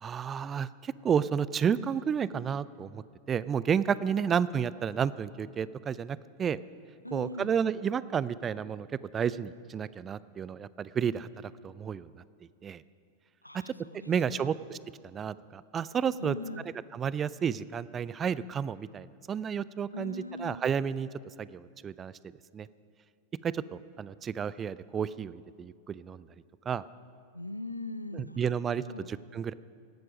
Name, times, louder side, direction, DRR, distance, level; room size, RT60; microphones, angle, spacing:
voice 1, 0.0-3.0 3.3-6.6 7.1-8.9 9.1-12.1 12.6-12.8 13.5-13.6 14.1-14.8 15.0-16.4 16.9-21.1 21.4-22.1 22.5-22.7 23.4-26.3 26.7-26.8 28.1-29.5, right 7 dB, 25° right, 18 dB, 0.4 m, -31 dB
voice 2, 4.0-4.4 7.0-7.5 13.4-14.5 16.2-16.7 19.9-20.6 27.3-29.1, left 2 dB, 85° left, 14 dB, 0.5 m, -41 dB
17.5 x 12.0 x 5.2 m, 2.2 s
figure-of-eight pair, 90°, 0 cm